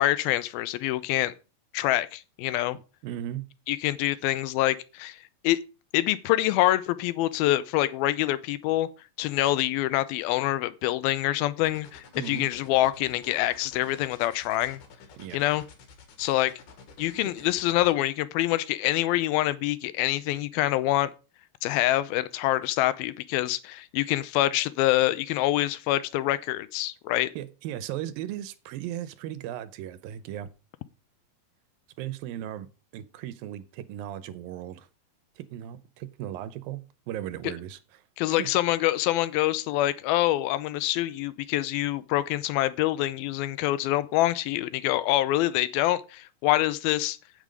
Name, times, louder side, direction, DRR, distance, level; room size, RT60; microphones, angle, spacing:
voice 1, 0.0-1.3 1.7-2.8 3.7-5.2 5.4-5.6 5.9-8.9 9.2-14.8 15.3-15.6 16.2-16.5 17.0-21.1 21.6-27.3 37.4-37.5 38.2-47.2, left 15 dB, 85° left, 2.5 m, -25 dB
voice 2, 3.0-3.5 12.2-12.5 15.2-15.4 17.4-17.5 27.4-30.5 32.0-32.7 32.9-34.9 35.4-38.0 38.3-38.5, right 12 dB, 80° right, 2.5 m, -37 dB
sound 1, 11.6-17.9, left 5 dB, 60° left, 3.2 m, -50 dB
9.1 x 8.3 x 5.1 m
omnidirectional pair, 4.3 m